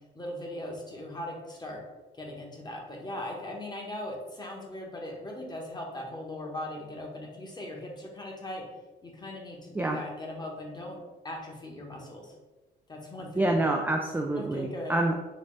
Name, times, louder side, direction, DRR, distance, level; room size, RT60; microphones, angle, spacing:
voice 1, 0.1-1.8 2.2-8.6 9.0-11.0 11.2-12.3 12.9-13.6 14.4-15.0, left 1 dB, 20° left, -1 dB, 1.1 m, -39 dB
voice 2, 13.4-15.2, right 2 dB, 10° right, 1 dB, 0.3 m, -27 dB
4.1 x 3.2 x 3.2 m, 1.2 s
cardioid pair, 90°, 20 cm